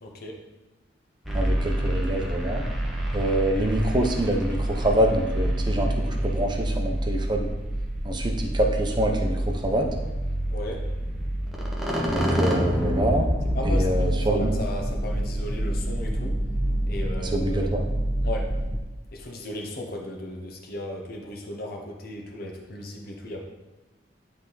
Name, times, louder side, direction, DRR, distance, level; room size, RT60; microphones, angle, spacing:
voice 1, 0.0-0.4 10.5-10.9 13.5-16.4 16.9-17.8 18.2-18.5 19.1-23.4, left 1 dB, 55° left, 1 dB, 1.0 m, -36 dB
sound 1, 1.3-18.8, equal, ahead, 1.1 m, -27 dB
voice 2, 1.3-2.6 3.1-7.5 8.0-9.9 12.1-13.3 13.6-14.5 17.2-17.8, right 1 dB, 25° right, 2 dB, 0.9 m, -26 dB
11.0 x 3.6 x 3.9 m, 1.1 s
head